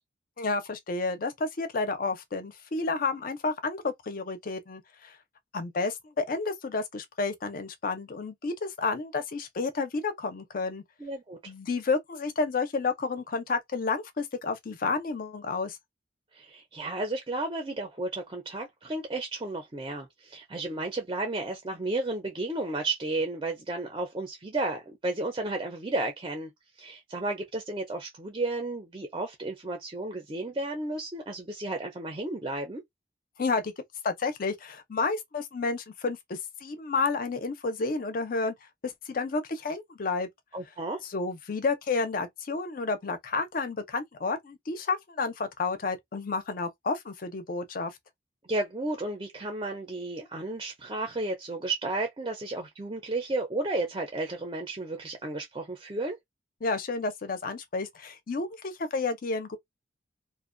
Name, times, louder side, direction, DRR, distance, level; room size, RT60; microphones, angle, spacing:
voice 1, 0.4-5.2 5.5-10.8 11.4-15.8 33.4-33.7 34.0-38.5 38.8-40.3 41.1-48.0 56.6-59.6, left 4 dB, 45° left, 0.5 m, -31 dB
voice 2, 11.0-11.5 16.3-26.5 26.8-32.8 40.5-41.0 48.4-56.2, right 2 dB, 25° right, 0.5 m, -33 dB
2.4 x 2.1 x 2.5 m
head